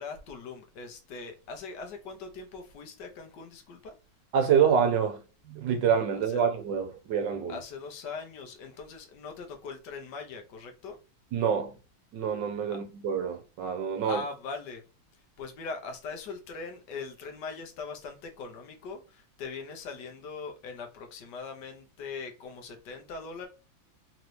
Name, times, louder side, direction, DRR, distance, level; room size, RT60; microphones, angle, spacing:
voice 1, 0.0-4.0 6.1-6.4 7.5-11.0 12.7-12.8 14.0-14.8 15.1-23.5, left 4 dB, 65° left, 1.5 m, -41 dB
voice 2, 4.3-5.2 5.5-7.5 11.3-11.7 12.1-14.2, right 7 dB, 75° right, 1.2 m, -26 dB
4.0 x 3.0 x 3.1 m
omnidirectional pair, 2.2 m